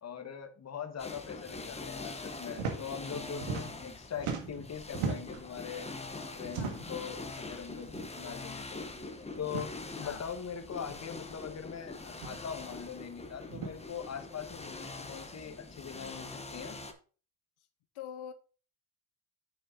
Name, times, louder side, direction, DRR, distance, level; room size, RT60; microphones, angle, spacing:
voice 1, 0.0-5.9 6.3-8.8 9.4-16.8, left 7 dB, 30° left, 1.3 m, -42 dB
sound 1, 1.0-16.9, left 3 dB, 15° left, 0.9 m, -44 dB
sound 2, 2.5-2.8 3.1-3.9 4.2-5.4 6.4-7.0 7.9-8.1 8.4-8.5 9.4-9.7 10.8-10.9 12.1-12.4 13.5-13.7, right 5 dB, 85° right, 1.9 m, -37 dB
voice 2, 6.5-7.1 10.0-10.2 17.9-18.3, left 9 dB, 75° left, 0.9 m, -45 dB
7.0 x 6.6 x 3.8 m
cardioid pair, 120°, 49 cm